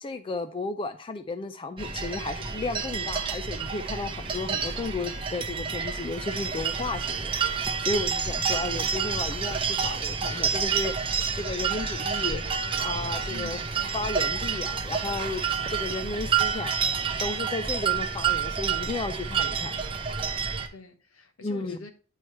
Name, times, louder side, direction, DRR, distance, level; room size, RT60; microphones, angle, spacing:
voice 1, 0.0-13.6 13.9-19.8 21.4-21.8, left 3 dB, 25° left, 0.3 m, -34 dB
sound 1, 1.8-20.7, right 6 dB, 25° right, 0.6 m, -29 dB
voice 2, 13.3-14.0 20.6-21.9, left 3 dB, 75° left, 1.0 m, -45 dB
9.3 x 3.2 x 4.3 m
head